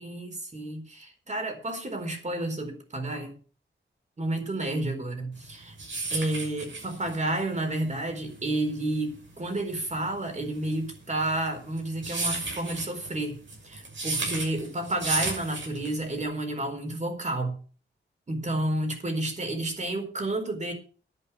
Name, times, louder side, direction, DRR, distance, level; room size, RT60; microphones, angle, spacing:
voice 1, 0.0-3.3 4.2-5.8 6.1-17.6 18.3-20.7, right 1 dB, 35° right, 5 dB, 4.4 m, -31 dB
sound 1, 5.4-16.2, right 3 dB, 70° right, 6.6 m, -34 dB
11.0 x 9.0 x 7.0 m, 0.39 s
wide cardioid pair, 95°, 20 cm